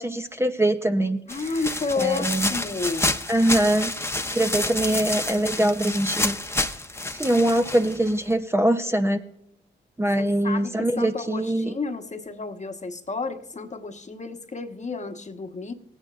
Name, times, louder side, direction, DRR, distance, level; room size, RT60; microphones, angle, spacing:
voice 1, 0.0-1.5 2.0-2.5 3.3-3.9 4.3-6.4 7.1-9.2 10.0-11.7, right 1 dB, 10° right, 6 dB, 0.7 m, -23 dB
voice 2, 1.3-3.1 10.2-15.7, left 4 dB, 35° left, 6 dB, 1.3 m, -31 dB
sound 1, 1.3-8.3, left 2 dB, 10° left, 0.9 m, -29 dB
18.5 x 9.1 x 2.5 m, 0.84 s
hypercardioid pair, 40°, 20 cm